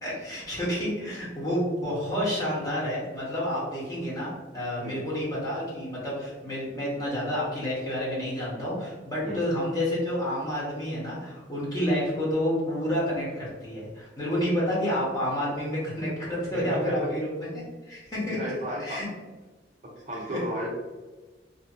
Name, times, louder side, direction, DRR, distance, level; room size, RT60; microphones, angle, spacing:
voice 1, 0.0-18.4 18.8-19.1 20.3-20.4, equal, 20° left, -8 dB, 1.0 m, -29 dB
voice 2, 16.5-17.1 18.3-19.0 19.8-20.7, equal, 40° right, -3 dB, 0.5 m, -33 dB
2.6 x 2.5 x 2.4 m, 1.2 s
head